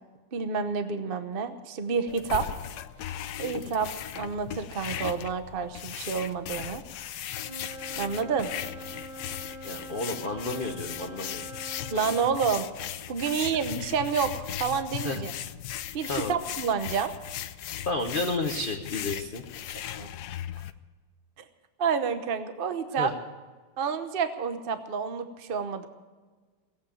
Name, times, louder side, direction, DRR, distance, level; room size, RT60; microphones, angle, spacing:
voice 1, 0.3-2.5 3.4-3.9 4.1-6.8 8.0-8.5 11.9-12.7 13.1-15.3 15.9-17.1 20.0-20.1 21.8-23.1 23.8-25.9, right 6 dB, 45° right, 9 dB, 0.7 m, -29 dB
sound 1, 2.1-20.7, left 11 dB, 75° left, 0.9 m, -38 dB
Wind instrument woodwind instrument, 7.4-12.3, right 2 dB, 15° right, 2.4 m, -43 dB
voice 2, 9.6-11.5 13.3-13.4 15.0-15.2 16.1-16.3 17.8-19.4 23.0-23.1, left 3 dB, 45° left, 3 dB, 0.7 m, -31 dB
17.5 x 8.6 x 8.7 m, 1.4 s
omnidirectional pair, 2.4 m